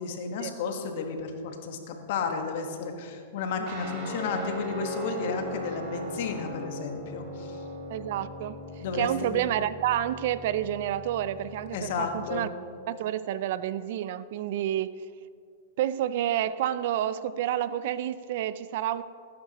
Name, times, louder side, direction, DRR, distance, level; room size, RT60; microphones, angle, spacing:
voice 1, 0.0-7.6 8.8-9.4 11.7-12.5, left 5 dB, 65° left, 5 dB, 1.4 m, -32 dB
Guitar, 3.7-12.5, equal, 45° right, 2.5 m, -39 dB
voice 2, 7.9-12.5 12.9-15.0 15.8-19.0, right 11 dB, 60° right, 15 dB, 0.4 m, -29 dB
17.0 x 9.4 x 3.0 m, 2.3 s
hypercardioid pair, 125°, 0 cm